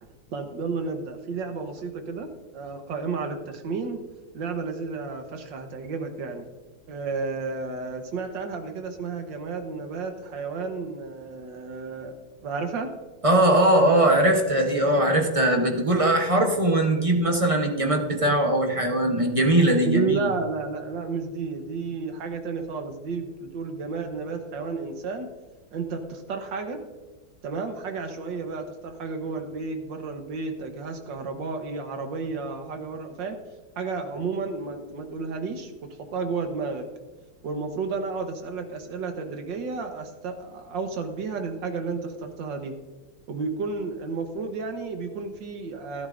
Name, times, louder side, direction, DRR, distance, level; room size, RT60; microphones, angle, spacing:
voice 1, 0.0-2.3 2.5-4.0 4.3-6.5 6.9-12.1 12.4-12.9 19.9-25.3 25.7-26.8 27.4-33.4 33.8-35.7 36.0-36.9 37.4-42.7 43.3-46.1, right 4 dB, 70° right, 5 dB, 1.8 m, -32 dB
voice 2, 13.2-20.3, right 1 dB, 30° right, 2 dB, 0.6 m, -21 dB
13.5 x 12.0 x 2.5 m, 1.3 s
omnidirectional pair, 2.1 m